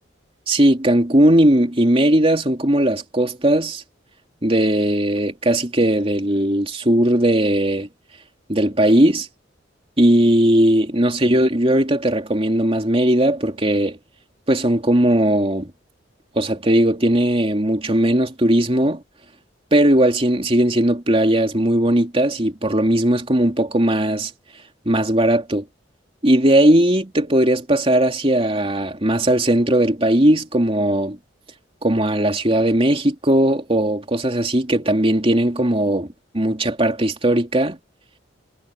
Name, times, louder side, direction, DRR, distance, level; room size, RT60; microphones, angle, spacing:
voice 1, 0.5-3.8 4.4-7.9 8.5-9.3 10.0-14.0 14.5-15.7 16.3-19.0 19.7-24.3 24.8-25.6 26.2-31.2 31.8-36.1 36.3-37.8, right 1 dB, 30° right, 3.0 m, -18 dB
head